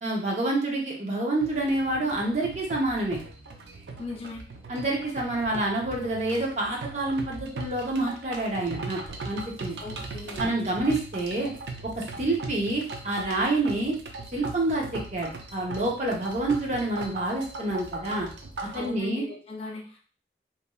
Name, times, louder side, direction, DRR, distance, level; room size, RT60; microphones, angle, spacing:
voice 1, 0.0-3.2 4.7-9.0 9.2-9.8 10.4-11.5 12.0-14.0 14.3-18.3 18.7-19.2, right 2 dB, 40° right, -1 dB, 0.7 m, -28 dB
sound 1, 1.4-18.9, right 3 dB, 75° right, 0.4 m, -39 dB
voice 2, 4.0-4.4 9.8-10.6 18.7-20.0, left 3 dB, 35° left, -1 dB, 0.5 m, -37 dB
3.0 x 2.5 x 2.2 m, 0.40 s
head